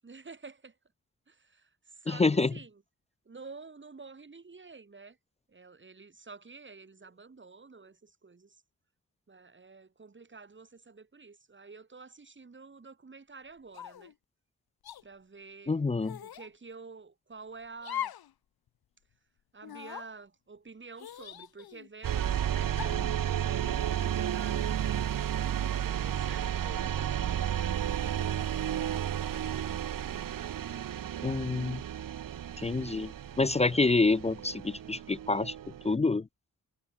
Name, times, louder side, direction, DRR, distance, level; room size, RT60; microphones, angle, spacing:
voice 1, 0.0-0.8 1.3-2.8 3.2-5.2 5.5-8.6 9.3-14.1 15.0-15.8 16.2-18.1 19.5-28.3, right 4 dB, 30° right, 2.8 m, -50 dB
voice 2, 2.1-2.5 15.7-16.2 31.2-31.8 32.6-35.5 35.8-36.3, left 3 dB, 20° left, 0.3 m, -27 dB
sound 1, 13.7-14.1 14.8-15.0 16.0-16.5 17.8-18.3 18.7-18.8 19.6-20.1 21.0-21.9 22.7-23.1, left 10 dB, 90° left, 0.9 m, -40 dB
sound 2, 22.0-35.9, right 10 dB, 65° right, 0.7 m, -32 dB
wide cardioid pair, 160°, 36 cm